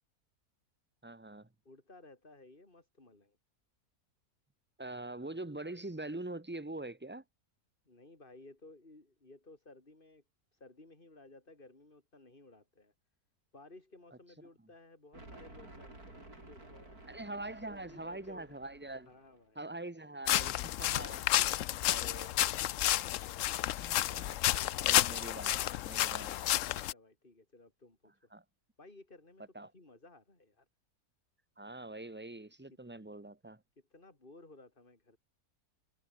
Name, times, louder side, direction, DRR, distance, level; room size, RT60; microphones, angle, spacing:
voice 1, 1.0-1.5 4.8-7.2 17.1-19.1 19.5-21.2 21.9-22.3 23.8-24.4 24.8-26.4 28.3-28.4 29.5-29.7 31.6-33.6, right 2 dB, 10° right, 0.9 m, -44 dB
voice 2, 1.6-3.4 7.9-10.2 10.5-12.9 13.5-17.0 17.7-18.6 19.1-19.7 21.4-21.7 26.7-28.1 28.8-30.7 33.9-35.2, left 2 dB, 35° left, 4.3 m, -57 dB
sound 1, 15.1-19.5, right 2 dB, 75° right, 8.0 m, -54 dB
sound 2, 20.3-26.9, left 13 dB, 65° left, 0.9 m, -31 dB
omnidirectional pair, 1.6 m